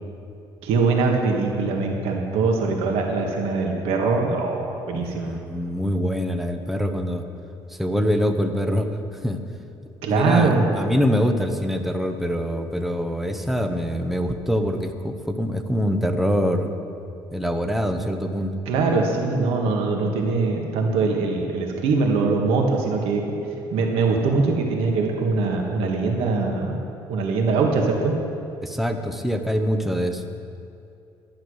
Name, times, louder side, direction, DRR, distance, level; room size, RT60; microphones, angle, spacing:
voice 1, 0.6-5.3 10.0-10.6 18.7-23.2 23.7-26.8 27.1-28.1, right 4 dB, 80° right, 1 dB, 1.7 m, -22 dB
voice 2, 4.9-7.2 7.8-8.9 9.2-9.4 10.1-16.7 17.3-18.5 28.6-30.2, equal, ahead, 6 dB, 0.7 m, -24 dB
12.0 x 10.5 x 6.4 m, 2.6 s
cardioid pair, 160°, 10 cm